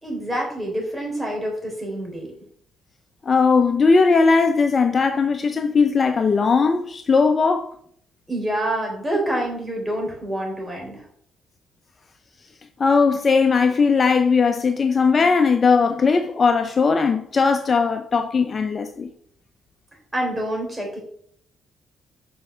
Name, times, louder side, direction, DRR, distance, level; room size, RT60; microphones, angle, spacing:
voice 1, 0.0-2.3 8.3-11.1 20.1-21.0, right 1 dB, 10° right, 3.7 m, -27 dB
voice 2, 3.3-7.7 12.8-19.1, left 4 dB, 40° left, 0.7 m, -18 dB
5.8 x 5.5 x 6.1 m
cardioid pair, 90°, 0 cm